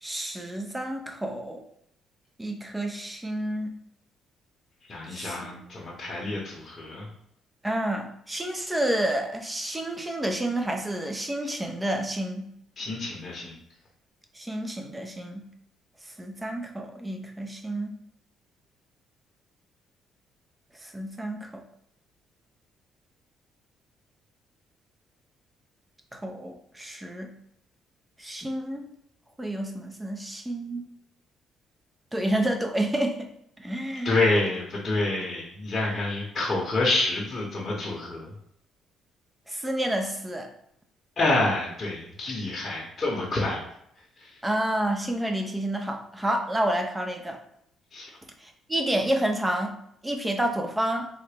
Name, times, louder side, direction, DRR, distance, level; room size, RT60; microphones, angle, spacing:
voice 1, 0.0-1.6 2.4-3.7 5.1-5.5 7.6-12.5 14.4-15.5 16.2-17.9 20.8-21.6 26.1-27.3 28.2-28.8 29.4-30.9 32.1-33.2 33.6-34.2 39.5-40.5 44.4-47.4 48.4-49.7 50.0-51.1, right 1 dB, 10° right, 3 dB, 0.5 m, -29 dB
voice 2, 4.9-7.1 12.8-13.5 34.0-38.3 41.2-43.6 44.2-44.4 47.9-48.1, left 2 dB, 30° left, -4 dB, 0.8 m, -27 dB
3.7 x 2.1 x 3.4 m, 0.73 s
cardioid pair, 110°, 0 cm